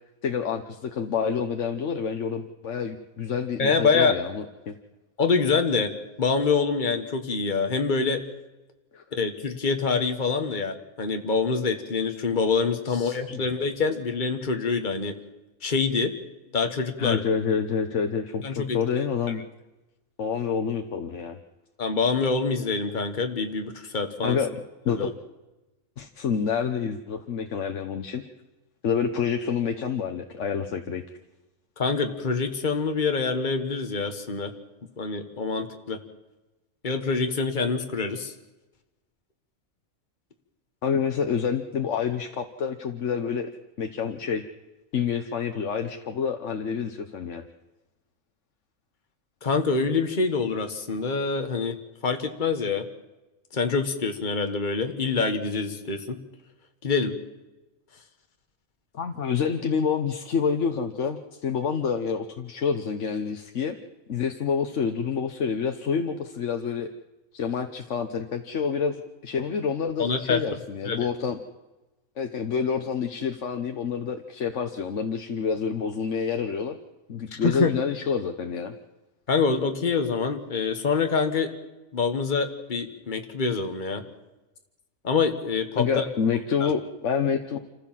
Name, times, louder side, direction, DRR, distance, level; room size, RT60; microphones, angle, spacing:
voice 1, 0.2-4.7 8.9-9.0 12.9-13.4 17.0-19.4 20.2-21.4 24.2-24.5 24.8-25.1 26.0-28.2 28.8-31.0 40.8-43.5 43.8-44.4 44.9-47.4 58.9-63.8 64.1-66.9 67.3-71.4 72.2-76.8 77.1-78.7 85.8-87.6, left 6 dB, 60° left, 5 dB, 1.3 m, -28 dB
voice 2, 3.6-4.1 5.2-5.9 6.2-8.2 9.1-15.1 15.6-16.1 16.5-17.2 18.4-19.1 21.8-24.4 24.9-25.1 31.8-34.5 35.0-36.0 36.8-38.3 49.4-51.8 52.0-52.8 53.5-56.2 56.8-57.1 70.0-70.4 70.9-71.0 77.3-77.7 79.3-81.5 81.9-84.0 85.0-86.0 86.6-86.7, left 4 dB, 35° left, 6 dB, 1.6 m, -25 dB
27.5 x 15.0 x 7.5 m, 1.1 s
omnidirectional pair, 1.4 m